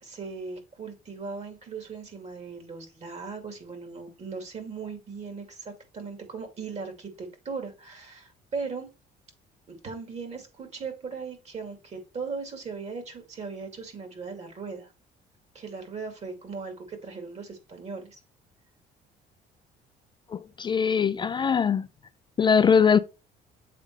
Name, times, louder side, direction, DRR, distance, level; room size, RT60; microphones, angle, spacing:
voice 1, 0.0-8.9 9.7-14.9 15.5-18.2, right 4 dB, 40° right, 2.5 m, -38 dB
voice 2, 20.3-21.9 22.4-23.0, left 6 dB, 30° left, 0.3 m, -21 dB
7.5 x 3.7 x 4.7 m
cardioid pair, 110°, 17 cm